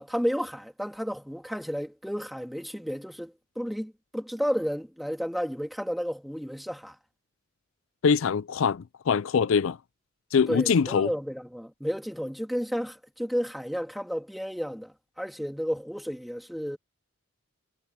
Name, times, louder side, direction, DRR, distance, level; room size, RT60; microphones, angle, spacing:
voice 1, 0.0-7.0 10.5-16.8, equal, ahead, 2.1 m, -32 dB
voice 2, 8.0-9.8 10.3-11.1, left 6 dB, 65° left, 0.4 m, -23 dB
head